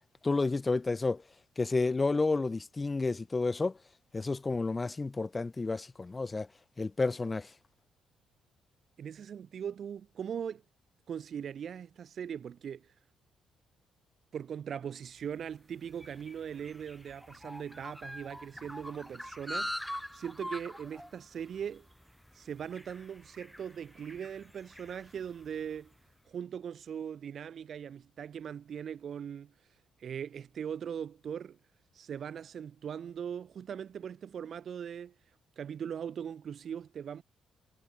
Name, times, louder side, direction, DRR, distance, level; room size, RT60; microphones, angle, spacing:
voice 1, 0.2-1.2 1.6-3.8 4.1-6.5 6.8-7.5, left 3 dB, 25° left, 0.6 m, -30 dB
voice 2, 9.0-10.6 11.1-12.9 14.3-21.9 22.3-25.9 26.3-29.5 30.0-31.6 31.9-35.1 35.6-37.2, right 8 dB, 55° right, 4.6 m, -40 dB
sound 1, 15.3-25.9, equal, 5° left, 4.1 m, -44 dB
cardioid pair, 90°, 0 cm